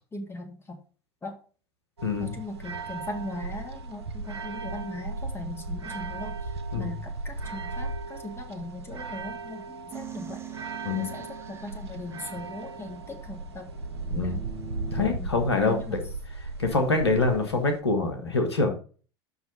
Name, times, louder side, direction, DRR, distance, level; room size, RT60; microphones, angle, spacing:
voice 1, 0.1-0.8 1.2-1.3 2.2-6.5 6.8-10.4 10.9-13.7 14.2-14.4 15.0-16.0, left 2 dB, 20° left, 3 dB, 1.7 m, -39 dB
voice 2, 2.0-2.3 6.7-6.9 10.8-11.1 14.1-14.4 14.9-16.0 16.6-18.7, left 3 dB, 85° left, 4 dB, 1.4 m, -25 dB
sound 1, 2.0-17.8, right 3 dB, 80° right, 0.8 m, -37 dB
sound 2, 9.9-15.1, right 5 dB, 20° right, 0.9 m, -43 dB
5.7 x 5.6 x 5.4 m, 0.39 s
figure-of-eight pair, 80°, 13 cm